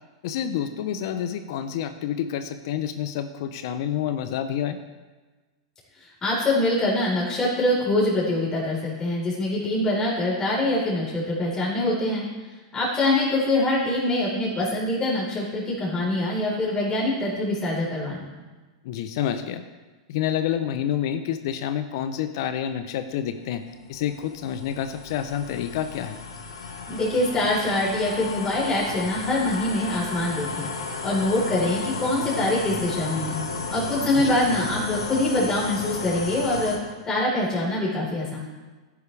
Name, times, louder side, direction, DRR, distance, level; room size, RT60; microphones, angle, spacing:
voice 1, 0.2-4.8 18.8-19.6 20.1-23.6 23.9-26.2 34.1-34.4, left 9 dB, 60° left, 10 dB, 0.8 m, -28 dB
voice 2, 6.0-12.2 12.7-18.3 26.9-30.7 31.0-33.4 33.7-36.8 37.0-38.4, left 1 dB, 20° left, -5 dB, 4.6 m, -24 dB
sound 1, 23.3-36.8, left 4 dB, 80° left, 1.9 m, -34 dB
16.0 x 9.9 x 3.5 m, 1.3 s
hypercardioid pair, 100°, 3 cm